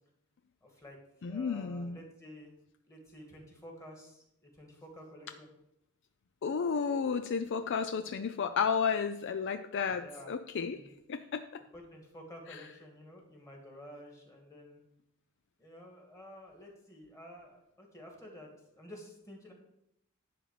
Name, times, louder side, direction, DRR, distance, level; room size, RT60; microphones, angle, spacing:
voice 1, 0.6-1.0 1.2-2.5 2.9-5.5 10.0-10.3 10.7-10.9 11.7-14.8 15.6-19.5, equal, 15° left, 0 dB, 2.3 m, -51 dB
voice 2, 1.2-2.0 6.4-10.8 11.1-11.6 12.5-12.6, left 6 dB, 55° left, 10 dB, 0.4 m, -32 dB
11.0 x 4.2 x 7.6 m, 0.81 s
head